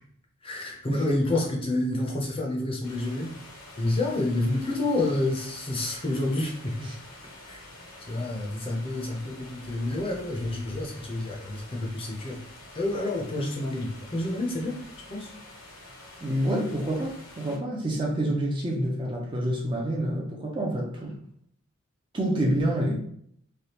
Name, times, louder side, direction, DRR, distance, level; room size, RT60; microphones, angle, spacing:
voice 1, 0.4-3.3 3.8-6.9 7.5-7.6 8.1-12.4 12.7-14.8 15.1-15.3, left 2 dB, 25° left, 0.6 m, -29 dB
sound 1, 2.8-17.6, left 1 dB, 70° left, 0.8 m, -47 dB
voice 2, 16.2-21.1 22.1-22.9, right 1 dB, 20° right, 0.5 m, -27 dB
3.3 x 2.3 x 2.9 m
head